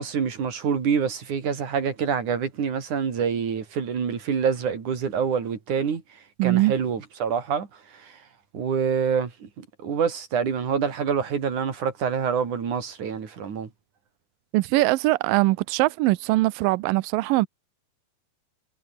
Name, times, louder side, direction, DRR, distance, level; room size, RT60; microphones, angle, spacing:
voice 1, 0.0-6.0 6.4-8.2 8.5-13.7, right 7 dB, 50° right, 4.6 m, -26 dB
voice 2, 6.4-6.7 14.5-17.5, right 19 dB, 85° right, 2.0 m, -21 dB
omnidirectional pair, 4.8 m